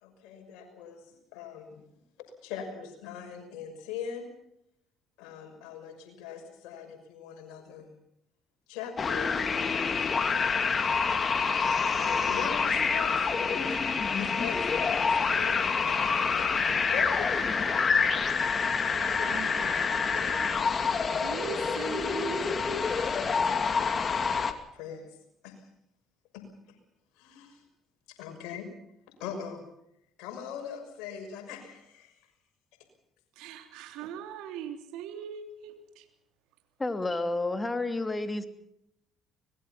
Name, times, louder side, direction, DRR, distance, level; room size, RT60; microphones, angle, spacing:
voice 1, 0.0-1.0 1.3-1.8 2.4-4.3 5.2-7.9 8.7-9.4 10.2-10.9 12.0-13.8 14.1-16.1 16.4-16.5 16.9-18.2 19.1-19.4 20.1-20.4 22.7-22.8 23.2-24.2 24.7-25.0 25.4-25.5 26.3-26.4 27.2-27.6 28.2-28.6 29.2-29.6 30.2-32.1 36.9-37.0, left 7 dB, 75° left, 4 dB, 6.2 m, -41 dB
sound 1, 9.0-24.5, left 5 dB, 40° left, 2.5 m, -27 dB
voice 2, 18.9-20.7 21.1-23.1 33.4-36.1, right 8 dB, 75° right, 6 dB, 3.2 m, -41 dB
voice 3, 36.8-38.4, left 2 dB, 20° left, 8 dB, 2.8 m, -30 dB
25.0 x 21.0 x 5.9 m, 0.76 s
hypercardioid pair, 60°, 0 cm